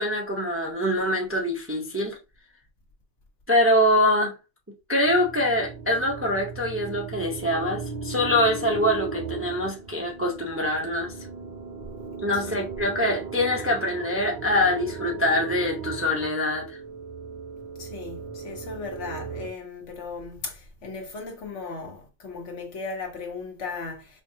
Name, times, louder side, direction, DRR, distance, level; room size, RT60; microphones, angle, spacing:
voice 1, 0.0-2.2 3.5-4.3 4.9-11.1 12.2-16.8, left 1 dB, 20° right, 0.4 m, -24 dB
sound 1, 5.0-19.5, right 5 dB, 50° right, 0.7 m, -37 dB
voice 2, 17.8-24.2, left 4 dB, 85° left, 1.4 m, -37 dB
4.5 x 2.4 x 2.7 m
omnidirectional pair, 1.2 m